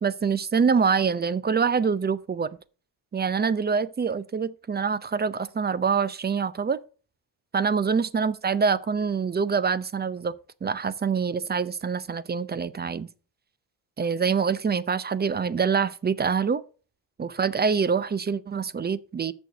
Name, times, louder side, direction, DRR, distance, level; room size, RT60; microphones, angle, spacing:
voice 1, 0.0-2.5 3.1-6.8 7.5-10.3 10.6-13.1 14.0-16.6 17.2-19.3, right 6 dB, 20° right, 0.6 m, -25 dB
6.5 x 6.5 x 6.4 m
supercardioid pair, 70°, 49 cm